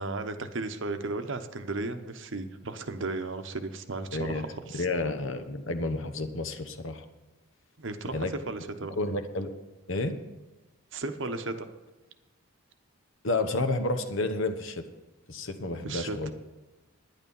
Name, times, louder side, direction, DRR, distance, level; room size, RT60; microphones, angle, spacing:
voice 1, 0.0-4.8 7.8-9.0 10.9-11.7 15.8-16.3, right 3 dB, 55° right, 9 dB, 0.9 m, -35 dB
voice 2, 4.1-4.4 4.7-7.0 8.1-8.3 9.0-9.5 9.9-10.2 13.2-14.8 15.3-16.3, left 2 dB, 60° left, 9 dB, 1.0 m, -30 dB
11.0 x 10.0 x 5.4 m, 1.2 s
head